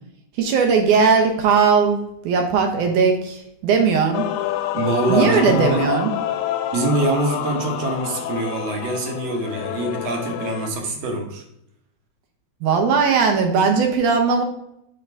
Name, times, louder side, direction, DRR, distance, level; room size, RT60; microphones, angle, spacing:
voice 1, 0.4-4.2 5.1-6.1 12.6-14.4, right 5 dB, 75° right, 3 dB, 2.6 m, -18 dB
Male singing / Female singing / Musical instrument, 4.1-10.7, left 12 dB, 80° left, 2.0 m, -27 dB
voice 2, 4.7-5.8 6.7-11.4, right 2 dB, 60° right, 2 dB, 2.1 m, -24 dB
8.0 x 3.9 x 4.7 m, 0.76 s
omnidirectional pair, 3.6 m